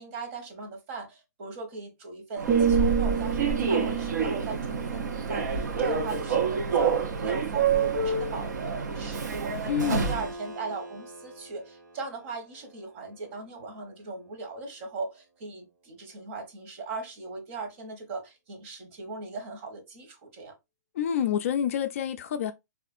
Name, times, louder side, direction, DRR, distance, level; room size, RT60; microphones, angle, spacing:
voice 1, 0.0-20.5, right 4 dB, 40° right, 1.1 m, -38 dB
Human voice / Subway metro underground, 2.4-10.3, right 5 dB, 70° right, 0.7 m, -28 dB
sound 1, 2.5-6.5 6.8-7.1, right 8 dB, 25° right, 0.6 m, -30 dB
voice 2, 9.7-10.1 20.9-22.5, left 9 dB, 50° left, 0.3 m, -27 dB
Keyboard (musical), 9.8-15.3, right 1 dB, 90° right, 1.3 m, -46 dB
3.4 x 2.4 x 2.4 m
hypercardioid pair, 145°, 10 cm